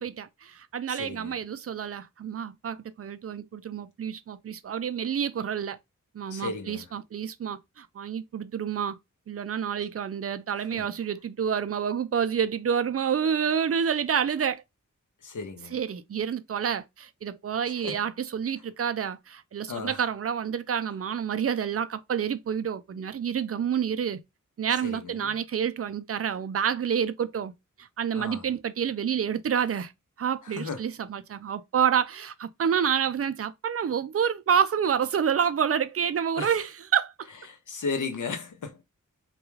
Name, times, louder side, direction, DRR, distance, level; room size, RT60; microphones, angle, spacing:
voice 1, 0.0-5.8 6.1-9.0 9.3-14.6 15.7-24.2 24.6-27.5 27.8-29.9 30.2-37.1, right 8 dB, 45° right, 0.4 m, -28 dB
voice 2, 0.9-1.4 6.3-6.9 10.7-10.9 15.2-15.8 17.8-18.0 19.7-20.0 24.8-25.3 28.1-28.5 30.4-30.9 36.4-36.6 37.5-38.8, left 4 dB, 70° left, 0.7 m, -35 dB
2.3 x 2.2 x 3.0 m
wide cardioid pair, 55°, 32 cm